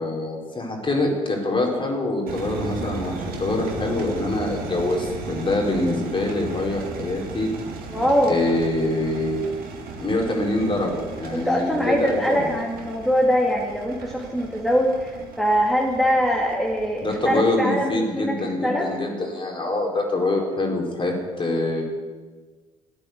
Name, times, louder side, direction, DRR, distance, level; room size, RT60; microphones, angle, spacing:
voice 1, 0.0-7.5 8.3-9.7 10.0-12.5 17.0-21.8, left 2 dB, 30° left, 0 dB, 4.2 m, -25 dB
sound 1, 2.3-17.2, right 3 dB, 60° right, 2.3 m, -35 dB
voice 2, 7.9-8.4 11.3-18.9, equal, ahead, -2 dB, 2.7 m, -22 dB
14.0 x 8.9 x 8.0 m, 1.4 s
hypercardioid pair, 55°, 17 cm